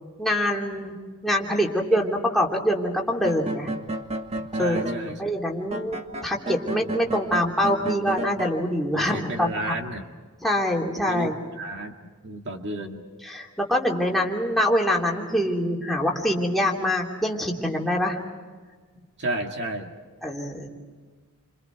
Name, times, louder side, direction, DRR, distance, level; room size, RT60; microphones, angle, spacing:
voice 1, 0.2-0.9 1.2-3.7 4.6-9.8 10.4-11.4 12.7-12.9 13.2-18.2 20.2-20.7, equal, ahead, -2 dB, 3.1 m, -25 dB
sound 1, 3.1-5.0 5.7-8.5, right 1 dB, 30° right, 1.6 m, -32 dB
voice 2, 4.4-5.2 8.9-10.0 11.1-11.9 12.2-13.1 19.2-19.9, right 1 dB, 55° right, 3 dB, 2.0 m, -32 dB
29.5 x 26.5 x 4.7 m, 1.5 s
head